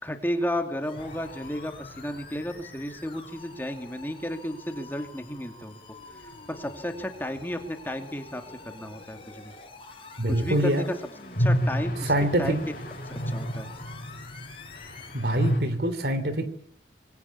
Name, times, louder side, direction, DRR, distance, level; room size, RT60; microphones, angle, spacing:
voice 1, 0.0-5.8 6.2-9.5 10.3-10.9 11.4-12.1 12.4-12.6 13.3-13.7, equal, 10° left, 6 dB, 2.5 m, -33 dB
sound 1, 0.8-15.7, left 3 dB, 30° left, 6.6 m, -48 dB
sound 2, 1.0-4.8 5.0-5.1 5.3-5.4 10.4-15.6, equal, 50° left, 5.8 m, -32 dB
voice 2, 10.2-10.8 12.0-12.6 15.1-16.5, right 1 dB, 65° right, 12 dB, 3.3 m, -25 dB
26.0 x 20.5 x 8.6 m, 0.66 s
head